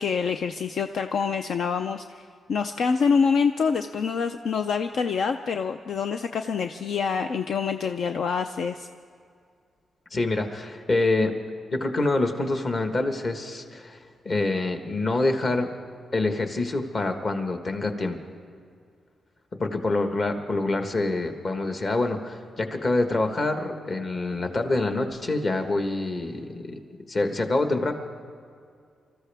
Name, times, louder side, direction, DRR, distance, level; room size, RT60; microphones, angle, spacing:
voice 1, 0.0-2.2 2.5-8.9, left 5 dB, 60° left, 7 dB, 0.5 m, -26 dB
voice 2, 10.1-11.3 11.7-14.0 14.2-15.7 16.1-18.2 19.6-26.8 27.1-27.9, left 2 dB, 35° left, 5 dB, 1.4 m, -26 dB
26.0 x 14.0 x 3.5 m, 2.3 s
wide cardioid pair, 150°, 0 cm